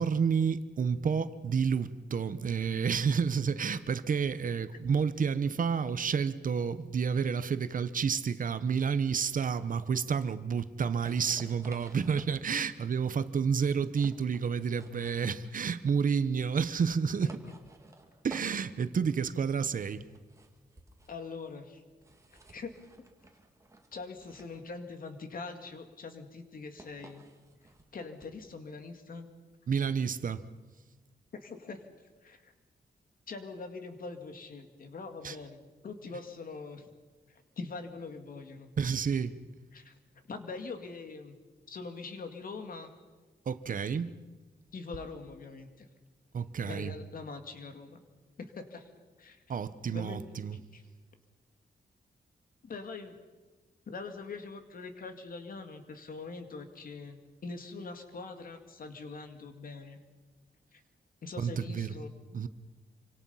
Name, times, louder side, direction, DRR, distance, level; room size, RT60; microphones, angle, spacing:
voice 1, 0.0-17.4 18.2-20.0 29.7-30.4 35.2-35.4 38.8-39.4 43.5-44.1 46.3-46.9 49.5-50.6 61.4-61.9 62.3-62.5, right 6 dB, 50° right, 1.0 m, -30 dB
sound 1, 10.8-28.5, right 2 dB, 15° right, 2.0 m, -55 dB
voice 2, 21.1-21.8 22.3-22.7 23.9-27.2 27.9-29.3 31.3-31.9 32.2-32.5 33.3-36.9 37.3-38.7 39.7-40.0 40.3-41.3 41.7-42.9 44.7-45.9 46.7-48.0 48.4-48.9 49.2-49.4 49.9-50.2 50.5-50.8 52.6-53.2 53.9-60.0 60.7-60.8 61.2-62.1, left 4 dB, 55° left, 2.3 m, -43 dB
27.0 x 25.5 x 5.7 m
wide cardioid pair, 180°, 18 cm